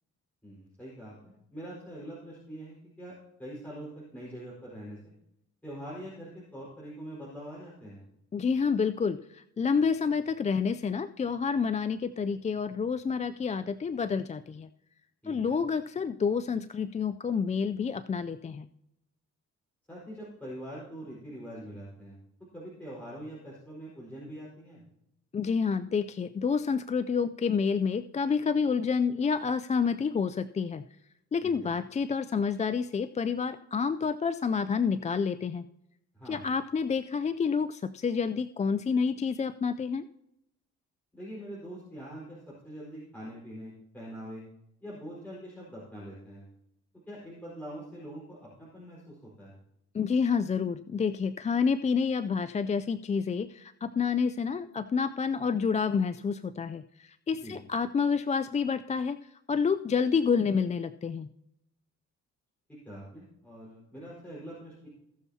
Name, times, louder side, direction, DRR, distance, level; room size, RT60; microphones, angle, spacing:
voice 1, 0.4-3.1 3.4-5.0 5.6-8.0 15.2-15.6 19.9-22.2 22.5-24.8 31.4-31.7 36.1-36.4 41.1-42.4 42.6-44.4 44.8-46.4 47.1-49.5 57.4-57.6 62.8-64.9, equal, 5° left, -6 dB, 4.6 m, -43 dB
voice 2, 8.3-14.7 15.3-18.7 25.3-30.8 31.3-35.7 36.3-40.0 49.9-61.3, left 5 dB, 25° left, 11 dB, 0.4 m, -29 dB
19.0 x 6.9 x 2.8 m, 0.82 s
cardioid pair, 90°, 30 cm